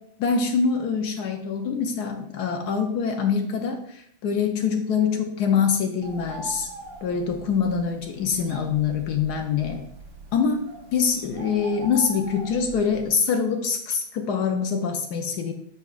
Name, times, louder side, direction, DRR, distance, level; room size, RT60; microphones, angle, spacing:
voice 1, 0.2-6.7 7.0-9.8 10.3-10.6 10.9-15.5, left 6 dB, 70° left, 4 dB, 0.9 m, -24 dB
Bird, 6.0-13.1, right 3 dB, 55° right, 1.3 m, -42 dB
8.2 x 5.7 x 2.4 m, 0.69 s
omnidirectional pair, 2.4 m